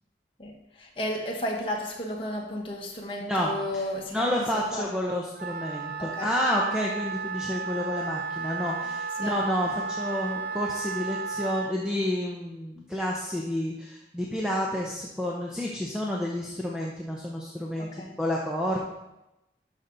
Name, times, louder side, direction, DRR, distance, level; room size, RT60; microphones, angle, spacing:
voice 1, 0.4-5.0 6.0-6.3 9.2-9.3 17.8-18.1, left 1 dB, 30° left, -2 dB, 1.7 m, -33 dB
voice 2, 3.2-3.5 4.1-18.8, left 1 dB, 5° right, -3 dB, 0.9 m, -30 dB
Wind instrument woodwind instrument, 5.4-11.7, right 4 dB, 55° right, 0.5 m, -33 dB
12.0 x 6.0 x 4.0 m, 0.92 s
head